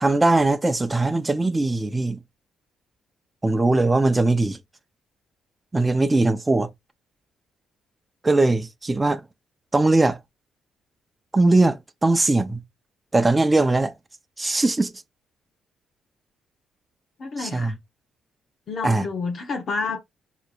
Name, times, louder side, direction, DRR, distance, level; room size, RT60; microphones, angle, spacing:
voice 1, 0.0-2.2 3.4-4.6 5.7-6.7 8.2-9.2 9.7-10.2 11.3-12.6 13.1-13.9 14.4-14.9 17.4-17.7 18.8-19.1, right 2 dB, 20° right, 0.6 m, -20 dB
voice 2, 17.2-17.7 18.7-20.0, left 4 dB, 55° left, 0.9 m, -29 dB
4.1 x 3.0 x 2.3 m
cardioid pair, 90°, 0 cm